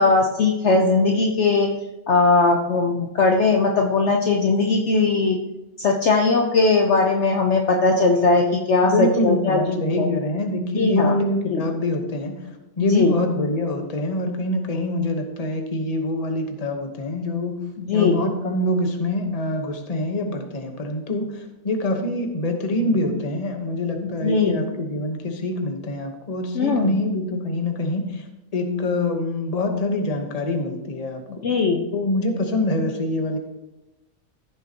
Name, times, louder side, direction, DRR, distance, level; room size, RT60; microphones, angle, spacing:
voice 1, 0.0-1.7 2.1-5.4 5.8-10.1 10.8-11.2 11.5-11.6 12.8-13.2 17.8-18.2 24.0-24.7 26.5-27.0 31.4-31.9, left 3 dB, 55° left, 2 dB, 1.0 m, -19 dB
voice 2, 8.8-12.4 12.8-17.6 17.9-28.2 28.5-31.5 31.9-33.4, left 1 dB, 30° left, 4 dB, 1.1 m, -25 dB
15.5 x 7.0 x 2.9 m, 1.0 s
omnidirectional pair, 1.6 m